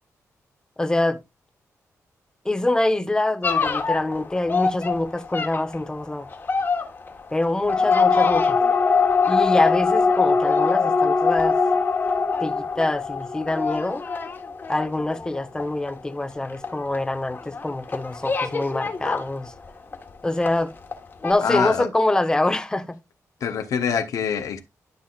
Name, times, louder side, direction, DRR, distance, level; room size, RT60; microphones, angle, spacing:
voice 1, 0.8-1.2 2.4-6.3 7.3-8.6 9.2-11.6 12.4-14.0 14.7-19.5 20.2-20.7 21.2-23.0, left 2 dB, 15° left, 1.0 m, -25 dB
sound 1, 3.4-20.1 20.4-21.0 21.2-21.3, left 4 dB, 35° left, 1.5 m, -23 dB
voice 2, 21.4-21.9 23.4-24.6, left 7 dB, 75° left, 1.1 m, -24 dB
12.0 x 5.6 x 2.5 m
cardioid pair, 105°, 6 cm